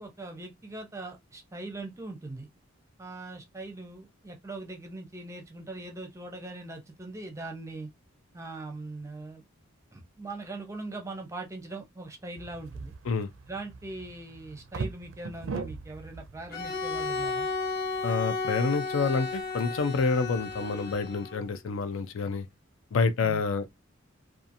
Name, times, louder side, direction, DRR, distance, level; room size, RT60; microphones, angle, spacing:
voice 1, 0.0-2.5 3.0-7.9 8.3-9.4 9.9-12.9 13.5-17.5 23.2-23.4, right 2 dB, 15° right, 0.5 m, -41 dB
sound 1, 12.4-21.0, right 4 dB, 70° right, 0.4 m, -42 dB
Bowed string instrument, 16.5-21.5, left 4 dB, 50° left, 0.9 m, -33 dB
voice 2, 18.0-22.5 22.9-23.6, left 4 dB, 75° left, 0.4 m, -28 dB
2.7 x 2.4 x 2.6 m
head